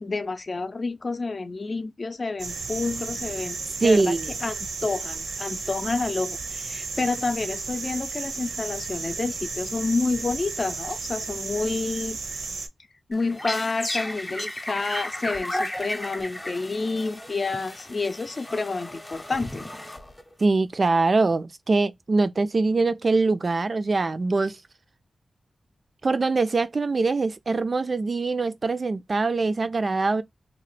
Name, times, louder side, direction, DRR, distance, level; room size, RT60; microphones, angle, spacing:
voice 1, 0.0-4.2 4.4-12.2 13.1-19.7, left 3 dB, 50° left, 0.5 m, -29 dB
sound 1, 2.4-12.7, right 4 dB, 80° right, 0.7 m, -33 dB
voice 2, 3.8-4.3 20.4-24.6 26.0-30.2, right 3 dB, 50° right, 0.4 m, -23 dB
sound 2, 13.1-20.4, left 1 dB, 15° left, 0.7 m, -34 dB
2.9 x 2.1 x 3.2 m
cardioid pair, 65°, 0 cm